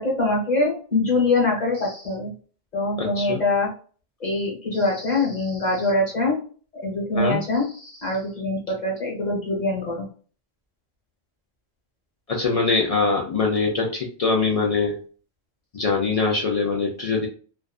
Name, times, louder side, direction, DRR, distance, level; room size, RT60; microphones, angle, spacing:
voice 1, 0.0-2.3 2.7-3.7 4.2-6.4 6.8-7.7 8.0-10.0, left 2 dB, 40° left, -3 dB, 1.2 m, -23 dB
voice 2, 3.0-3.4 4.7-5.5 7.1-7.4 12.3-15.0 15.7-17.3, left 4 dB, 60° left, 0 dB, 0.4 m, -23 dB
2.4 x 2.3 x 2.3 m, 0.41 s
omnidirectional pair, 1.1 m